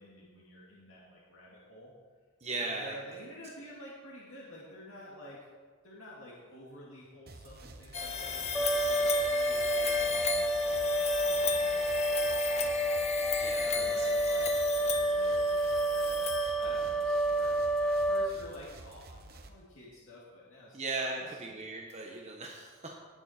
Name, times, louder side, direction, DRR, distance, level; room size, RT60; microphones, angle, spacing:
voice 1, 0.0-1.9 2.5-5.4 5.8-17.5 17.8-21.6, equal, 80° left, -6 dB, 2.2 m, -50 dB
voice 2, 2.4-2.9 13.4-13.7 14.0-14.1 20.7-23.0, right 3 dB, 30° right, -1 dB, 1.1 m, -37 dB
sound 1, 7.3-19.5, right 2 dB, 50° right, 1.0 m, -50 dB
sound 2, 7.9-17.0, left 6 dB, 30° left, 0.9 m, -36 dB
sound 3, 8.5-18.3, right 1 dB, 5° left, 0.4 m, -29 dB
19.0 x 7.3 x 4.4 m, 1.5 s
head